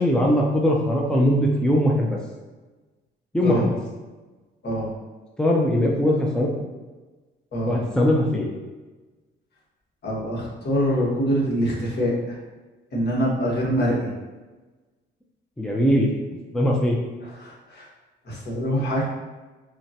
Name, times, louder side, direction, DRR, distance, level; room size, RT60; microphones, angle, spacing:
voice 1, 0.0-2.2 3.3-3.8 5.4-6.5 7.7-8.5 15.6-16.1 16.5-17.0, equal, 5° left, -1 dB, 0.5 m, -20 dB
voice 2, 10.0-12.4 12.9-14.1 17.2-17.9 18.3-19.1, equal, 60° left, -4 dB, 1.3 m, -24 dB
5.5 x 2.2 x 2.8 m, 1.2 s
cardioid pair, 90°, 20 cm